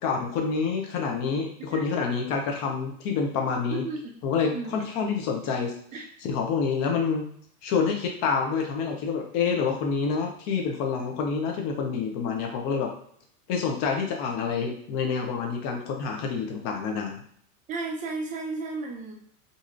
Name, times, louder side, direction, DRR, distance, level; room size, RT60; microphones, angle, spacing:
voice 1, 0.0-3.8 4.2-5.7 6.2-7.3 7.6-12.9 13.5-17.2, left 5 dB, 40° left, 2 dB, 0.7 m, -27 dB
voice 2, 1.6-2.0 3.7-4.1 4.4-4.9 5.9-6.0 17.7-19.1, right 3 dB, 20° right, 1 dB, 0.4 m, -34 dB
2.8 x 2.6 x 2.5 m, 0.63 s
hypercardioid pair, 110°, 43 cm